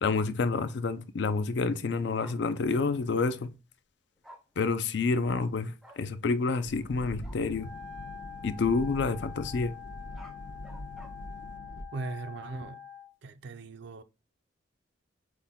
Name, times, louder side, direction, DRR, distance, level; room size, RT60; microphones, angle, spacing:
voice 1, 0.0-3.5 4.6-7.7 8.4-9.8, left 4 dB, 55° left, 0.4 m, -28 dB
Bark, 2.2-2.4 4.2-4.4 5.3-5.5 5.8-6.0 7.2-7.4 9.9-11.1, equal, ahead, 0.5 m, -51 dB
sound 1, 6.6-11.8, left 1 dB, 75° left, 0.8 m, -43 dB
Wind instrument woodwind instrument, 7.5-13.1, left 7 dB, 80° right, 0.8 m, -45 dB
voice 2, 11.9-12.8 13.2-14.0, right 3 dB, 55° right, 0.4 m, -39 dB
5.8 x 2.2 x 3.5 m
head